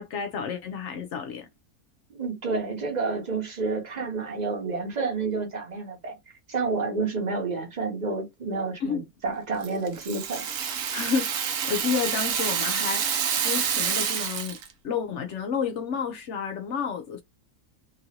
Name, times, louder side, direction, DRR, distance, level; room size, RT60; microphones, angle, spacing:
voice 1, 0.0-1.5 8.8-9.0 10.9-14.6 14.8-17.2, left 6 dB, 65° left, 0.7 m, -30 dB
voice 2, 2.1-10.5, right 4 dB, 35° right, 0.9 m, -30 dB
Rattle (instrument), 9.6-14.7, right 8 dB, 70° right, 1.0 m, -28 dB
3.0 x 2.4 x 2.7 m
omnidirectional pair, 1.6 m